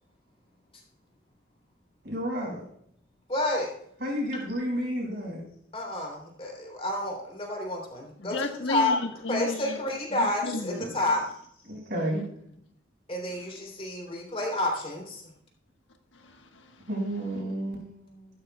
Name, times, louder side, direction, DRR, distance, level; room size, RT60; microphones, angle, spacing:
voice 1, 2.0-2.6 4.0-5.4 10.8-10.9 11.7-12.2 16.9-18.3, equal, 55° right, 5.4 m, -31 dB
voice 2, 3.3-3.7 5.7-8.3 8.7-8.9 9.3-11.2 13.1-15.2, left 1 dB, 30° left, 3.3 m, -29 dB
voice 3, 8.2-9.8 10.1-10.9 16.1-16.7, left 2 dB, 75° left, 1.4 m, -33 dB
14.5 x 12.5 x 2.4 m
head